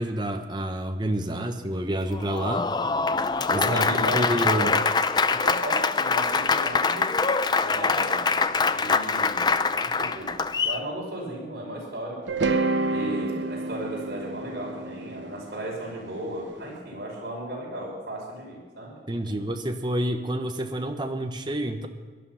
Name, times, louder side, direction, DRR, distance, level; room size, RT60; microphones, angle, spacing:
voice 1, 0.0-2.7 3.5-4.8 19.1-21.9, right 1 dB, 25° right, 6 dB, 1.1 m, -28 dB
Applause, 2.1-10.8, left 4 dB, 25° left, 0.4 m, -24 dB
voice 2, 3.5-4.8 5.3-7.1 7.5-8.3 8.7-12.5 12.9-19.0 19.2-19.4, right 1 dB, 55° right, -3 dB, 5.6 m, -35 dB
sound 1, 12.3-16.4, right 3 dB, 85° right, 0.8 m, -29 dB
17.5 x 11.5 x 5.7 m, 1.4 s
head